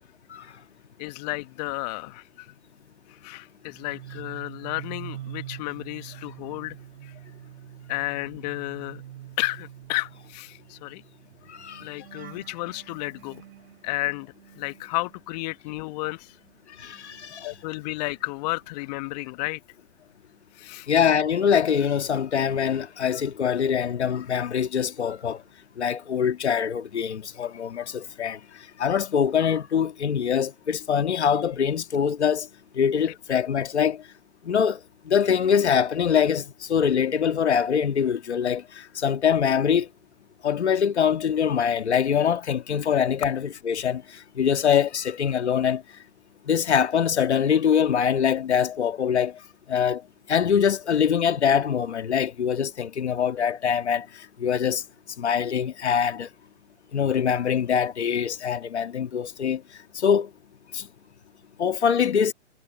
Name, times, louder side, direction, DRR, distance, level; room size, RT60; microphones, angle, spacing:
voice 1, 1.0-2.5 3.1-6.8 7.0-7.1 7.9-9.0 9.4-11.0 11.8-13.4 13.8-16.4 17.4-19.6 20.5-20.9, left 22 dB, 35° left, 1.3 m, -32 dB
sound 1, 3.6-15.9 16.2-18.3 18.6-19.0, right 12 dB, 55° right, 3.3 m, -45 dB
voice 2, 11.5-11.8 16.8-17.5 20.9-25.4 25.8-32.5 32.7-34.0 34.4-39.9 40.4-45.8 46.5-49.4 49.7-50.0 50.3-54.8 55.2-56.3 56.9-59.6 59.9-60.3 60.7-60.9 61.6-62.3, left 7 dB, 75° left, 1.8 m, -24 dB
hypercardioid pair, 125°, 34 cm